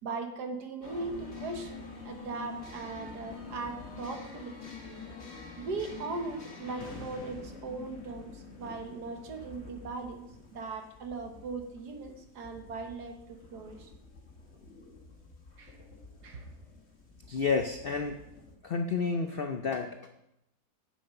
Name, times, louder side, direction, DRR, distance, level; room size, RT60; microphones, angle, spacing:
voice 1, 0.0-4.5 5.6-13.9 15.6-15.8 16.2-16.5, right 3 dB, 75° right, 5 dB, 1.7 m, -39 dB
sound 1, 0.8-18.5, left 4 dB, 45° left, 1.8 m, -47 dB
voice 2, 17.3-18.2 18.6-20.1, left 5 dB, 65° left, 5 dB, 0.5 m, -30 dB
8.4 x 7.8 x 5.4 m, 0.85 s
omnidirectional pair, 1.7 m